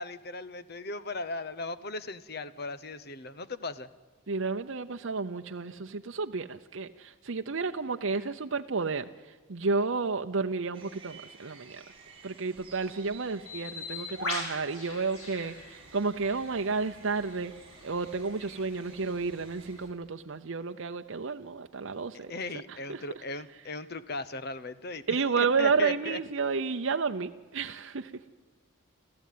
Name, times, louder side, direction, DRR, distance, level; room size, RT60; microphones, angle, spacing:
voice 1, 0.0-3.9 22.1-26.2, left 2 dB, 50° left, 15 dB, 0.9 m, -37 dB
voice 2, 4.3-9.0 9.5-11.8 12.2-17.5 17.8-22.3 22.9-23.0 25.1-28.3, right 4 dB, 65° right, 6 dB, 0.7 m, -31 dB
sound 1, 10.7-19.7, right 4 dB, 25° right, 5.2 m, -54 dB
Bird, 13.5-19.9, left 3 dB, 80° left, 4.8 m, -42 dB
29.5 x 13.5 x 9.4 m, 1.4 s
head